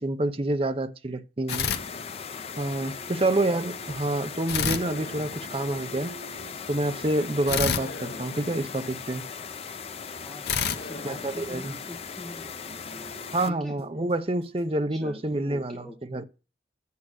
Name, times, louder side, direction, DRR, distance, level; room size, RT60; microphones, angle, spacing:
voice 1, 0.0-1.7 2.6-6.1 6.7-9.2 11.0-11.8 13.3-16.2, right 2 dB, 30° right, 0.7 m, -28 dB
sound 1, 1.5-2.6 4.5-5.9 7.5-9.2 10.5-12.0, left 7 dB, 60° left, 0.8 m, -31 dB
sound 2, 1.5-13.5, left 6 dB, 35° left, 0.5 m, -39 dB
sound 3, 2.8-14.9, right 2 dB, 65° right, 2.3 m, -51 dB
voice 2, 3.2-3.5 8.0-8.2 10.2-13.1 13.5-13.7 14.9-16.0, equal, 5° left, 1.3 m, -44 dB
8.5 x 6.1 x 6.2 m
head